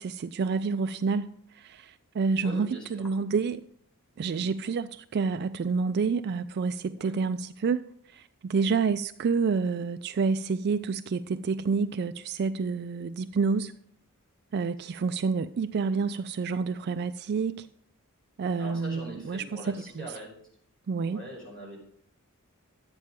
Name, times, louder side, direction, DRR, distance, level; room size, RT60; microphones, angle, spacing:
voice 1, 0.0-3.6 4.2-13.7 14.5-17.7 18.4-19.4 20.0-20.1 20.9-21.2, right 5 dB, 50° right, 0.3 m, -28 dB
voice 2, 2.4-3.1 4.3-4.5 6.9-7.2 8.5-8.7 18.6-20.3 21.0-21.8, right 1 dB, 5° left, 4.9 m, -42 dB
11.5 x 8.9 x 3.7 m
head